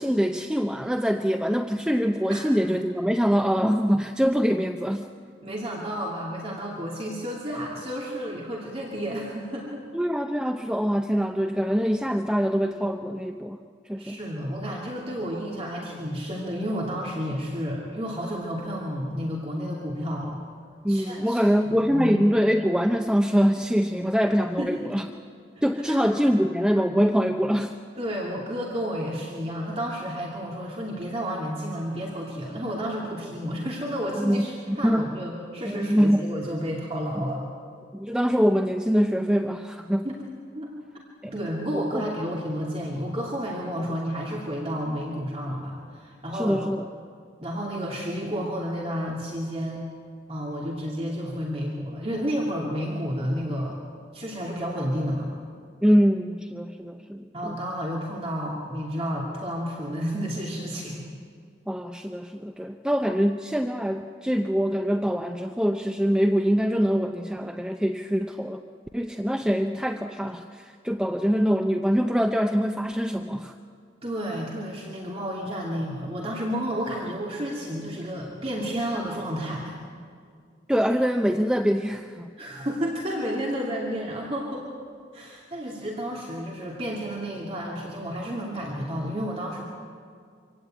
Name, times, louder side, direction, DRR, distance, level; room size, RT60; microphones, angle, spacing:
voice 1, 0.0-5.1 9.9-13.6 13.9-14.2 20.8-25.1 25.6-27.8 34.2-35.1 35.7-36.2 37.9-40.1 41.2-41.3 41.7-41.8 46.3-46.8 55.8-57.6 61.7-68.6 68.9-73.5 80.7-82.3, equal, 5° right, 5 dB, 0.6 m, -24 dB
voice 2, 5.4-9.8 14.0-20.4 20.9-21.4 21.9-22.2 24.6-24.9 25.9-26.1 28.0-37.4 40.0-40.1 40.5-40.7 41.2-46.6 47.4-49.8 50.3-53.8 54.1-55.3 57.3-61.1 74.0-79.8 82.4-84.7 85.1-89.6, equal, 35° right, -3 dB, 2.7 m, -31 dB
25.0 x 16.5 x 9.1 m, 2.2 s
head